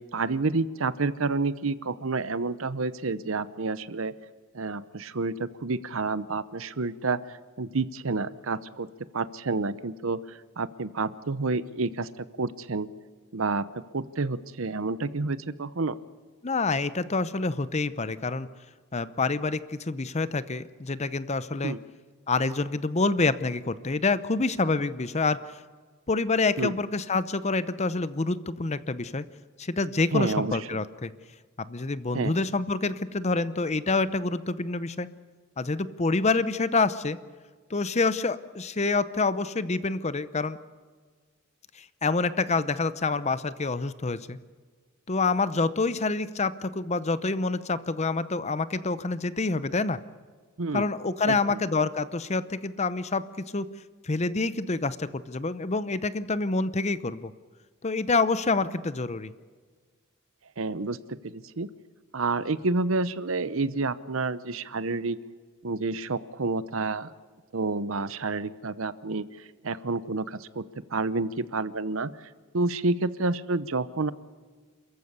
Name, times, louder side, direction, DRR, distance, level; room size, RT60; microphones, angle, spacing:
voice 1, 0.0-4.1 4.5-8.9 9.1-12.9 13.3-13.7 13.9-16.0 21.6-21.8 26.6-26.7 30.1-30.8 32.1-32.3 50.6-50.9 51.2-51.6 60.6-61.7 62.1-65.2 65.6-67.1 67.5-70.6 70.9-72.1 72.5-74.1, right 3 dB, 70° right, 16 dB, 0.8 m, -29 dB
voice 2, 16.4-18.5 18.9-21.8 22.3-25.6 26.1-29.2 29.6-31.1 31.6-35.1 35.6-37.2 37.7-40.6 41.8-44.4 45.1-50.0 50.7-53.3 53.5-53.7 54.0-57.3 57.8-59.3, left 3 dB, 30° left, 15 dB, 0.8 m, -27 dB
28.5 x 14.5 x 8.2 m, 1.5 s
head